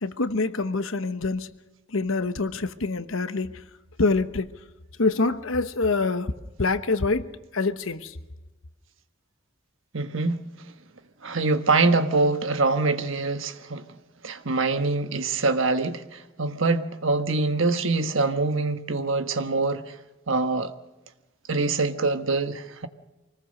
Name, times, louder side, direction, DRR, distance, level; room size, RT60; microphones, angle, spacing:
voice 1, 0.0-1.5 1.9-3.6 4.0-4.5 5.0-6.3 6.6-8.2, left 3 dB, 75° left, 1.1 m, -25 dB
voice 2, 9.9-10.4 11.2-13.9 14.2-19.9 20.3-20.7 21.5-22.9, right 3 dB, 70° right, 1.3 m, -24 dB
25.0 x 19.0 x 6.6 m
head